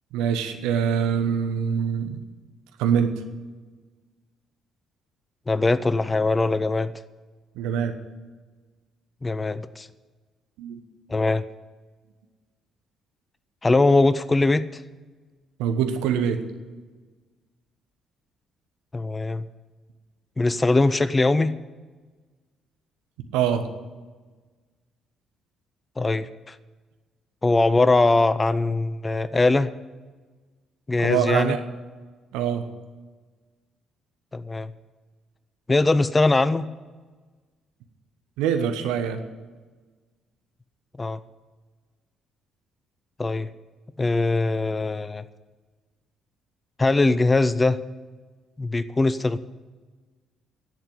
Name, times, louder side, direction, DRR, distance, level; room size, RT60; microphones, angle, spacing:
voice 1, 0.1-2.2 2.8-3.1 7.5-7.9 10.6-10.8 15.6-16.4 23.3-23.6 31.0-31.6 32.3-32.6 38.4-39.2, right 8 dB, 65° right, 7 dB, 1.1 m, -24 dB
voice 2, 5.5-6.9 9.2-9.9 11.1-11.4 13.6-14.8 18.9-19.5 20.4-21.5 26.0-26.6 27.4-29.7 30.9-31.6 34.3-34.7 35.7-36.7 41.0-41.2 43.2-43.5 44.0-45.2 46.8-47.8 48.6-49.4, left 2 dB, 20° left, 15 dB, 0.5 m, -21 dB
11.0 x 7.9 x 9.6 m, 1.3 s
figure-of-eight pair, 45°, 0 cm